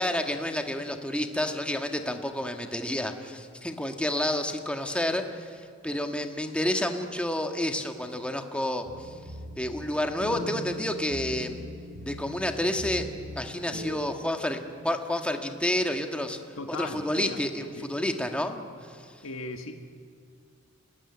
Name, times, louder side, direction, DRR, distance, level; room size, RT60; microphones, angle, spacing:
voice 1, 0.0-9.1 9.6-11.6 12.0-13.1 13.3-16.4 16.7-18.6 19.0-19.1, left 1 dB, 5° left, 4 dB, 1.6 m, -30 dB
sound 1, 8.8-13.9, left 1 dB, 75° right, 5.6 m, -40 dB
voice 2, 16.6-17.9 19.2-19.7, left 2 dB, 80° left, 5 dB, 1.8 m, -38 dB
27.0 x 19.0 x 9.8 m, 2.2 s
head